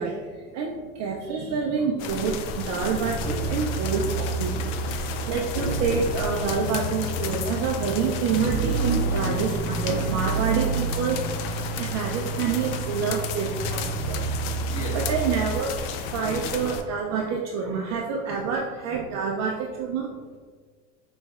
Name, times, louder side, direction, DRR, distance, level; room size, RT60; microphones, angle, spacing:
voice 1, 0.0-14.2 14.7-15.7 16.1-20.4, right 5 dB, 40° right, 0 dB, 0.4 m, -28 dB
sound 1, 2.0-16.8, left 5 dB, 55° left, 0.5 m, -33 dB
sound 2, 3.0-15.5, right 4 dB, 5° right, 1.1 m, -30 dB
voice 2, 13.9-15.2, equal, 15° left, -4 dB, 1.3 m, -40 dB
5.2 x 3.1 x 2.3 m, 1.5 s
hypercardioid pair, 105°, 45 cm